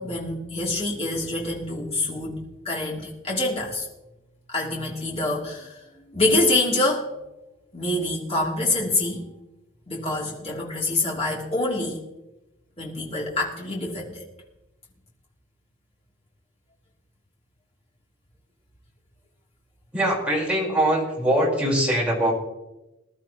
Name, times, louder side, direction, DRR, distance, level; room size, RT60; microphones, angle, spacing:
voice 1, 0.0-3.9 4.5-7.1 7.7-9.2 9.9-12.0 12.8-14.2, left 2 dB, 30° left, -3 dB, 3.0 m, -26 dB
voice 2, 19.9-22.3, right 1 dB, 5° right, -4 dB, 4.3 m, -22 dB
21.0 x 12.0 x 3.0 m, 0.97 s
head